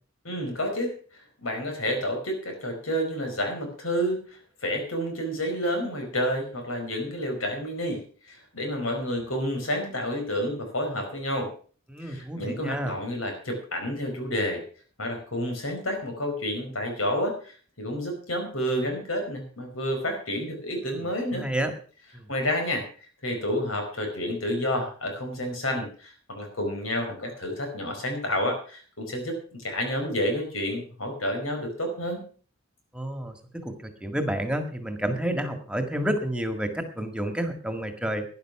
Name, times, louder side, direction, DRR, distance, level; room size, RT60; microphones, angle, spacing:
voice 1, 0.2-11.5 12.0-14.6 15.0-21.5 22.3-22.9 23.2-32.2, equal, 90° left, 4 dB, 5.0 m, -30 dB
voice 2, 11.9-13.0 20.9-21.0 21.3-21.7 22.1-22.3 32.9-38.3, right 1 dB, 5° right, 7 dB, 1.8 m, -30 dB
12.5 x 10.5 x 5.9 m, 0.42 s
head